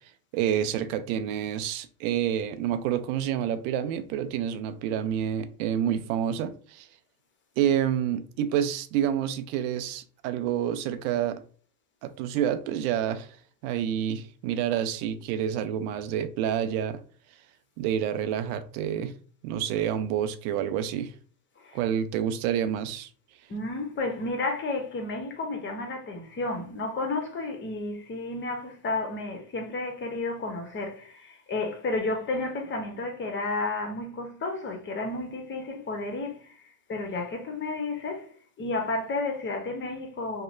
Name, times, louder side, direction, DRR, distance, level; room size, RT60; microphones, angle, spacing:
voice 1, 0.3-6.9 7.6-11.4 12.0-13.4 13.6-17.0 17.8-19.1 19.4-21.1 21.7-23.1, right 9 dB, 65° right, 0.5 m, -28 dB
voice 2, 23.5-36.6 36.9-38.3 38.6-40.4, left 2 dB, 25° left, 0.8 m, -32 dB
2.8 x 2.0 x 2.5 m
hypercardioid pair, 80°, 45 cm